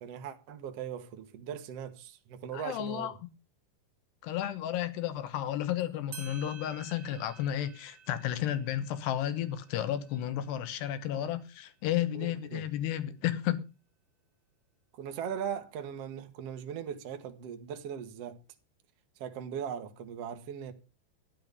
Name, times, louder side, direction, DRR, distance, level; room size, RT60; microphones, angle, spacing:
voice 1, 0.0-3.2 11.1-11.3 12.1-12.7 14.9-18.4 19.2-20.7, right 8 dB, 70° right, 1.4 m, -39 dB
voice 2, 2.5-3.1 4.2-13.6, left 11 dB, 80° left, 3.2 m, -32 dB
sound 1, 5.8-5.9 6.1-11.2, right 6 dB, 35° right, 2.2 m, -52 dB
12.0 x 10.5 x 5.2 m
omnidirectional pair, 4.8 m